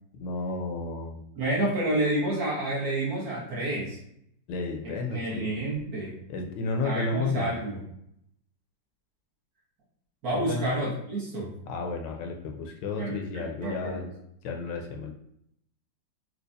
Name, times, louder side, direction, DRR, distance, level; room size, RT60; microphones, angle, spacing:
voice 1, 0.2-1.2 4.5-5.5 6.3-7.6 10.3-10.7 11.7-14.1 14.4-15.1, left 3 dB, 75° left, 2 dB, 1.2 m, -32 dB
voice 2, 1.3-4.0 4.8-6.2 6.8-7.8 10.2-11.5 13.0-13.2 13.6-14.1, right 1 dB, 55° right, -6 dB, 1.5 m, -29 dB
4.5 x 2.4 x 2.6 m, 0.74 s
omnidirectional pair, 2.0 m